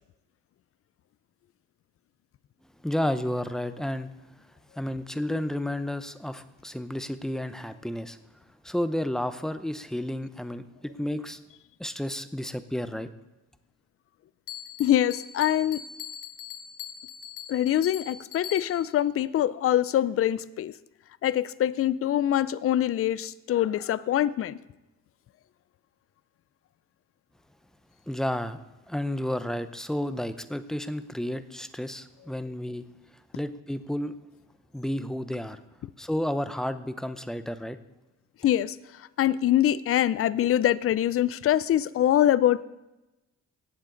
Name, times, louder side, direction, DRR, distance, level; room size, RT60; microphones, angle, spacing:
voice 1, 2.8-4.1 4.8-8.2 8.6-11.4 11.8-13.1 28.1-28.6 28.9-32.8 33.3-34.1 34.7-35.6 36.0-37.8, left 1 dB, ahead, 0.7 m, -31 dB
Bell, 14.5-19.0, left 8 dB, 85° left, 0.9 m, -41 dB
voice 2, 14.8-15.8 17.5-20.7 21.2-24.6 38.4-42.6, left 12 dB, 50° left, 0.5 m, -24 dB
18.0 x 7.4 x 3.9 m
cardioid pair, 90°, 30 cm